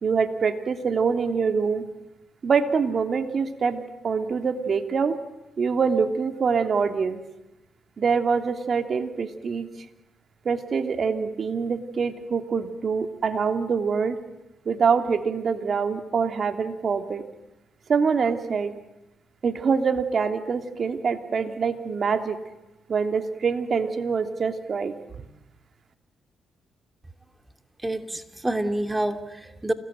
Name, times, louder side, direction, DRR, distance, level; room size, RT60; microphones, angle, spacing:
voice 1, 0.0-1.8 2.4-5.2 5.6-7.2 8.0-9.7 10.4-14.2 14.6-17.2 17.9-18.8 19.4-22.4 22.9-25.2, right 5 dB, 50° right, 6 dB, 2.9 m, -25 dB
voice 2, 27.8-29.7, right 1 dB, 15° right, 7 dB, 2.6 m, -28 dB
29.0 x 19.5 x 9.1 m, 0.99 s
supercardioid pair, 60°, 0 cm